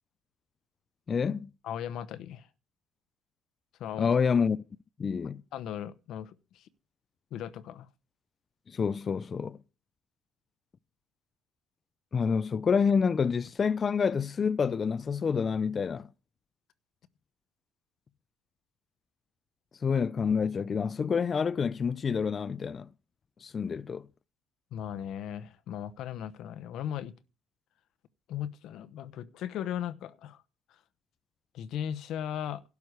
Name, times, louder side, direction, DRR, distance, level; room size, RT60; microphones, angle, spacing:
voice 1, 1.1-1.5 4.0-4.6 5.0-5.4 8.7-9.6 12.1-16.1 19.8-22.9 23.4-24.1, left 6 dB, 35° left, 0.4 m, -28 dB
voice 2, 1.6-2.5 3.8-4.1 5.5-6.6 7.3-7.9 24.7-27.1 28.3-30.4 31.5-32.6, left 10 dB, 65° left, 0.9 m, -37 dB
12.0 x 4.7 x 8.1 m
supercardioid pair, 85°, 0 cm